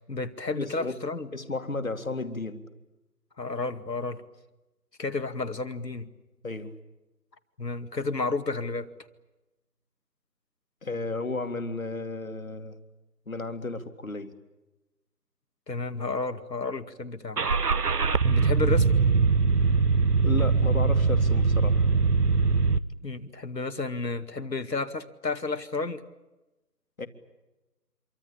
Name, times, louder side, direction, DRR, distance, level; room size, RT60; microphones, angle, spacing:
voice 1, 0.0-1.3 3.4-4.2 5.0-6.1 7.6-8.9 15.7-17.4 18.2-19.0 23.0-26.0, left 3 dB, 80° left, 9 dB, 2.3 m, -31 dB
voice 2, 0.5-1.0 1.3-2.6 6.4-6.7 10.8-12.8 13.3-14.3 20.2-21.9 27.0-27.1, left 3 dB, 55° left, 8 dB, 2.4 m, -33 dB
Car / Engine starting, 17.4-22.8, right 4 dB, 70° right, 1.1 m, -22 dB
26.5 x 24.5 x 8.7 m, 1.0 s
figure-of-eight pair, 175°, 49 cm